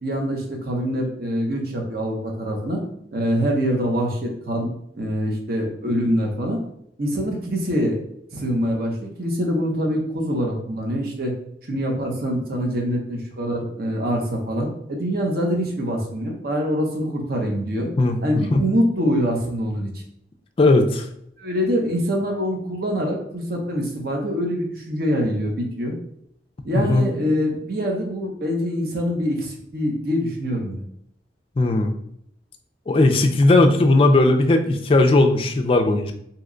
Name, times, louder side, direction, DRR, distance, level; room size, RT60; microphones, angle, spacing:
voice 1, 0.0-2.8 3.1-4.7 5.0-6.6 7.0-8.0 8.3-11.3 11.7-17.9 18.2-19.9 21.4-25.9 26.6-30.8, equal, 55° right, 0 dB, 0.7 m, -24 dB
voice 2, 18.0-18.7 20.6-21.1 26.7-27.0 31.6-31.9 32.9-36.1, left 2 dB, 30° left, 5 dB, 0.3 m, -17 dB
2.8 x 2.2 x 3.7 m, 0.72 s
head